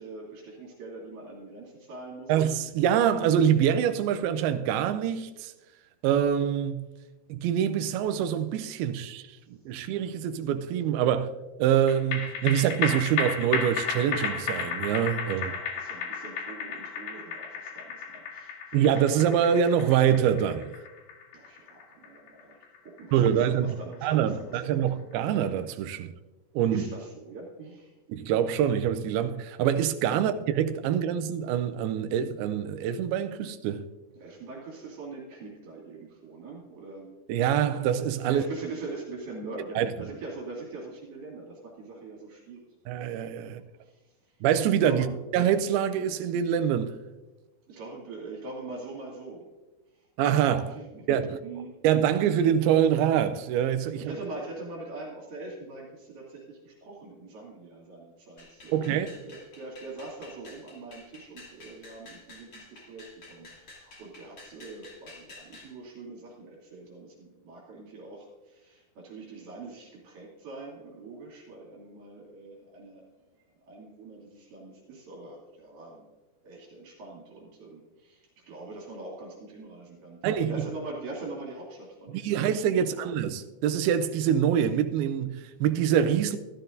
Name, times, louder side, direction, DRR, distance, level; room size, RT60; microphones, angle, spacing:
voice 1, 0.0-2.3 15.3-18.8 21.3-24.8 26.7-27.9 34.2-37.1 38.3-42.6 43.5-44.3 44.8-45.1 47.7-49.5 49.9-50.1 50.7-51.8 54.0-73.1 73.7-76.1 76.4-82.4 82.7-83.1, right 3 dB, 55° right, 4.0 m, -43 dB
voice 2, 2.3-5.5 6.0-6.9 7.3-9.2 9.7-15.5 18.7-20.7 23.1-23.8 24.0-26.1 26.6-26.8 28.1-33.9 37.3-38.4 39.8-39.9 42.9-43.6 44.4-45.0 45.3-47.0 50.2-50.8 51.1-51.4 51.8-54.2 58.7-59.1 80.2-80.6 82.1-86.4, right 9 dB, 85° right, 2.2 m, -25 dB
sound 1, 11.9-24.5 24.9-25.0, left 6 dB, 80° left, 3.6 m, -34 dB
sound 2, 58.4-65.7, left 3 dB, 30° left, 2.4 m, -50 dB
14.5 x 12.5 x 2.6 m
omnidirectional pair, 4.9 m